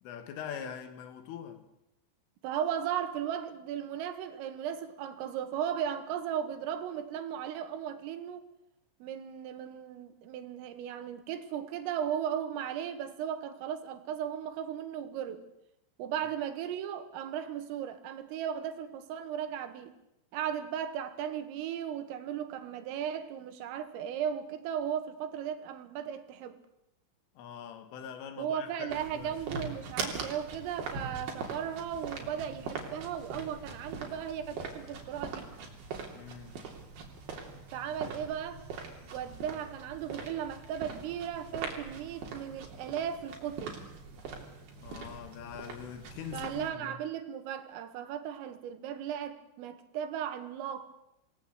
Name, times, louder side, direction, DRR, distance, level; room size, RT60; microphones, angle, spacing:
voice 1, 0.0-1.7 27.4-29.4 36.1-36.6 44.8-47.0, left 8 dB, 75° left, 4.5 m, -43 dB
voice 2, 2.4-8.4 9.0-15.4 16.0-19.9 20.3-26.6 28.4-35.5 37.7-38.6 39.1-43.8 46.3-50.9, right 9 dB, 90° right, 4.4 m, -36 dB
sound 1, 28.9-46.7, right 4 dB, 50° right, 4.8 m, -42 dB
27.0 x 18.0 x 8.2 m
omnidirectional pair, 5.7 m